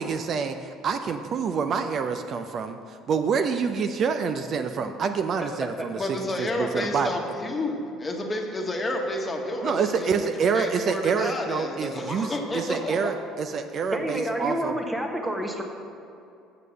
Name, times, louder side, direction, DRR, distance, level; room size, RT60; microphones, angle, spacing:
voice 1, 0.0-6.0 6.4-7.2 9.6-14.8, right 6 dB, 50° right, 7 dB, 0.4 m, -27 dB
voice 2, 6.0-10.3 10.5-13.2, left 1 dB, 25° left, 1 dB, 1.2 m, -30 dB
voice 3, 13.9-15.6, equal, 10° right, 2 dB, 1.1 m, -29 dB
6.8 x 6.7 x 6.2 m, 2.6 s
cardioid pair, 105°, 0 cm